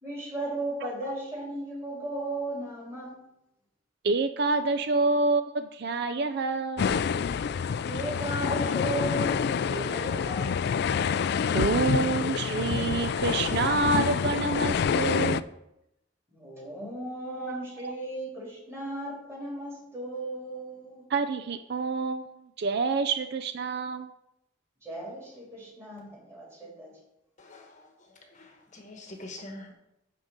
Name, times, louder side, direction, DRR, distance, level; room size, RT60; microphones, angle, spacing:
voice 1, 0.0-3.2 7.8-10.6 16.3-21.0 24.8-27.0, right 1 dB, 15° right, -4 dB, 3.7 m, -36 dB
voice 2, 4.0-6.9 8.5-8.6 11.5-15.4 17.5-17.6 17.8-17.9 21.1-24.1, right 4 dB, 55° right, 10 dB, 0.4 m, -27 dB
sound 1, 6.8-15.4, left 6 dB, 55° left, 0.3 m, -27 dB
voice 3, 27.4-29.7, left 1 dB, 40° left, 3 dB, 1.1 m, -45 dB
10.5 x 3.8 x 7.3 m, 0.84 s
head